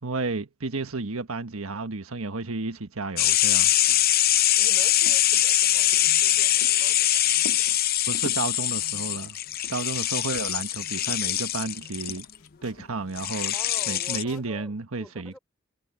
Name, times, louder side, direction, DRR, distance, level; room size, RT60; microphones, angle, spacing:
voice 1, 0.0-3.7 8.1-9.4 9.7-12.3 12.6-13.5 13.9-15.4, right 3 dB, 85° right, 1.4 m, -32 dB
sound 1, 3.2-12.2 13.2-14.2, left 13 dB, 45° left, 0.6 m, -23 dB
sound 2, 3.4-4.1 4.4-4.5 4.7-7.0 7.4-8.5 9.1-10.1 10.3-11.8 12.1-13.3 13.6-14.5, left 3 dB, 90° left, 2.0 m, -45 dB
voice 2, 4.6-7.2 13.5-15.4, equal, 5° left, 4.4 m, -47 dB
head